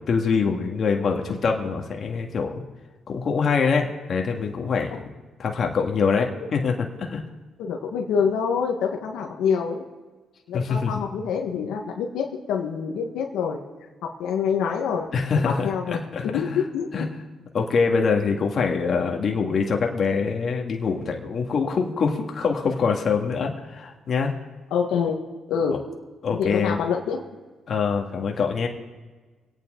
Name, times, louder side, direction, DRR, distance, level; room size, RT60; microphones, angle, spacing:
voice 1, 0.1-2.6 3.1-5.0 5.4-7.2 10.5-11.0 15.1-16.6 16.9-17.1 17.5-24.3 26.2-26.8 27.7-28.7, left 5 dB, 50° left, 2 dB, 1.8 m, -24 dB
voice 2, 7.6-9.8 10.5-13.6 14.0-16.9 24.7-25.2 25.5-25.7 26.3-27.2, left 6 dB, 85° left, 1 dB, 1.4 m, -26 dB
25.0 x 9.0 x 3.8 m, 1.3 s
cardioid pair, 90°, 0 cm